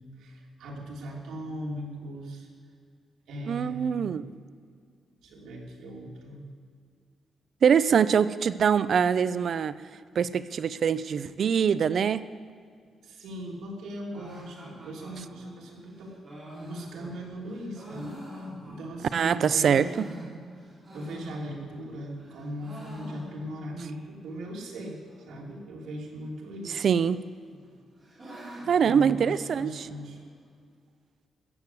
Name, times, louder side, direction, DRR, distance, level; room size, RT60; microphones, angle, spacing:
voice 1, 0.0-2.5 3.3-4.2 5.2-6.4 13.0-16.1 16.6-20.1 20.9-25.0 25.3-26.9 28.8-30.2, right 1 dB, 85° right, -1 dB, 2.9 m, -39 dB
voice 2, 3.5-4.2 7.6-9.7 10.2-12.2 19.1-19.8 26.8-27.2 28.7-29.9, right 7 dB, 45° right, 15 dB, 0.4 m, -23 dB
sound 1, 14.1-19.1 19.5-21.9 22.2-23.7 24.0-24.1 24.3-24.4 25.0-25.5 26.5-27.1 27.5-29.9, equal, 20° right, 4.7 m, -45 dB
14.0 x 8.2 x 8.3 m, 2.1 s
wide cardioid pair, 170°, 0 cm